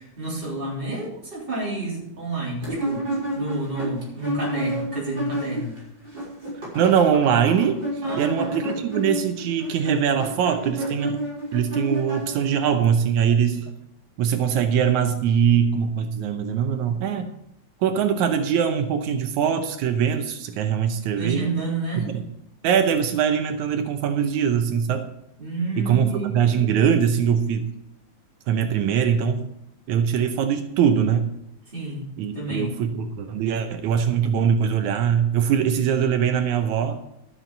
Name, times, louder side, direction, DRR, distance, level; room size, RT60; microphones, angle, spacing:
voice 1, 0.0-5.8 8.0-8.5 21.2-22.2 25.4-26.4 31.7-32.0 32.3-32.8, right 2 dB, 15° right, -4 dB, 3.6 m, -30 dB
sound 1, 2.6-5.8 6.0-12.7, right 1 dB, 35° right, 6.5 m, -29 dB
voice 2, 6.8-7.8 8.1-11.2 11.5-13.7 14.2-17.3 17.8-21.5 22.0-22.2 22.6-25.0 25.8-27.7 28.5-29.5 29.9-31.3 32.2-37.0, right 8 dB, 85° right, 6 dB, 2.3 m, -22 dB
13.0 x 7.5 x 5.4 m, 0.82 s
omnidirectional pair, 3.3 m